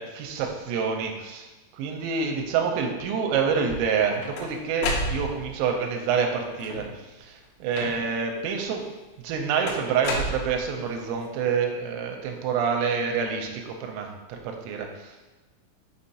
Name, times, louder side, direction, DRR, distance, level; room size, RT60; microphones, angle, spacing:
voice 1, 0.0-1.5 1.8-6.9 7.2-8.8 9.2-15.1, right 6 dB, 90° right, 3 dB, 3.3 m, -27 dB
sound 1, 3.8-5.7 6.5-7.0 7.7-8.3 9.7-11.0, left 1 dB, 85° left, 3.4 m, -31 dB
6.3 x 5.7 x 2.8 m, 1.1 s
omnidirectional pair, 5.8 m